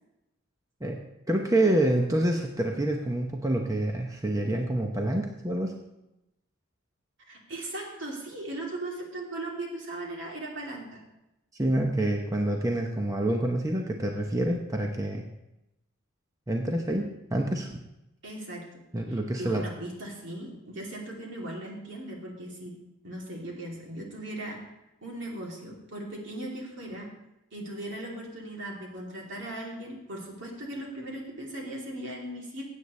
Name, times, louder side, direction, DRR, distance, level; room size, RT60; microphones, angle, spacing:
voice 1, 0.8-5.8 11.5-15.2 16.5-17.8 18.9-19.6, right 1 dB, 15° right, 2 dB, 0.7 m, -27 dB
voice 2, 7.3-11.0 18.2-18.6 19.1-22.7 23.0-24.6 25.0-27.1 27.5-32.7, right 1 dB, 65° right, -2 dB, 2.9 m, -38 dB
16.5 x 8.4 x 3.2 m, 0.91 s
head